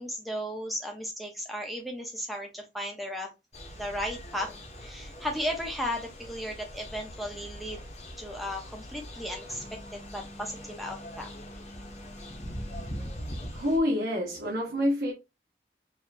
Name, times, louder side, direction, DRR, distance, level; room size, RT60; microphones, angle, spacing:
voice 1, 0.0-3.3 3.7-4.5 4.8-7.9 8.2-11.3, equal, ahead, 0.9 m, -35 dB
sound 1, 3.5-13.8, equal, 40° left, 1.0 m, -42 dB
voice 2, 13.5-15.1, left 1 dB, 90° right, 1.4 m, -27 dB
4.7 x 2.9 x 2.7 m
head